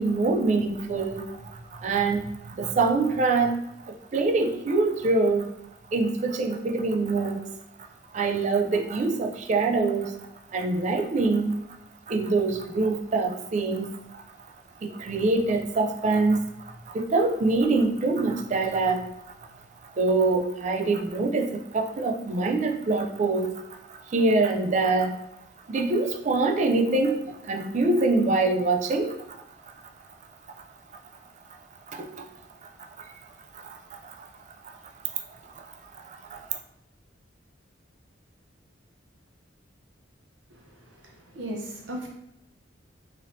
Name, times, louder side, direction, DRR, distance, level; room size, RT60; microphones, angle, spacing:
voice 1, 0.0-3.5 3.8-5.5 5.9-7.4 8.1-10.1 10.5-11.6 12.1-14.0 14.8-16.5 16.9-19.1 19.9-23.6 23.9-25.2 25.7-29.1 31.9-32.3 32.6-32.7 33.0-33.1 33.5-34.3 35.6-36.5, right 3 dB, 40° right, 4 dB, 0.3 m, -25 dB
voice 2, 40.5-42.1, right 1 dB, 75° right, 0 dB, 0.8 m, -37 dB
3.9 x 3.1 x 2.7 m, 0.83 s
head